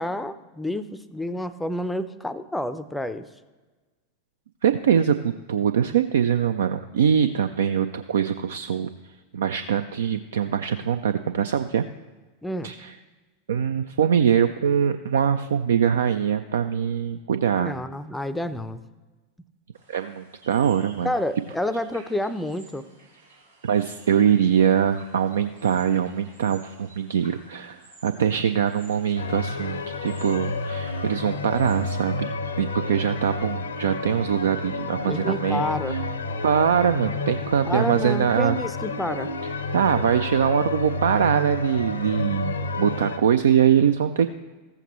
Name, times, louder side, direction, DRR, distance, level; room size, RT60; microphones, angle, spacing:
voice 1, 0.0-3.3 12.4-12.7 17.6-18.8 21.0-22.8 35.0-35.9 37.7-39.3, left 1 dB, 5° left, 13 dB, 0.5 m, -29 dB
voice 2, 4.6-8.9 9.3-11.8 12.6-12.9 13.5-17.7 19.9-21.1 23.6-35.6 36.4-38.6 39.7-44.3, right 8 dB, 65° right, 10 dB, 0.3 m, -23 dB
sound 1, 19.7-32.0, right 2 dB, 85° right, 2.9 m, -52 dB
sound 2, 29.1-43.2, left 3 dB, 70° left, 0.6 m, -30 dB
14.5 x 7.8 x 3.0 m, 1.3 s
figure-of-eight pair, 90°, 0 cm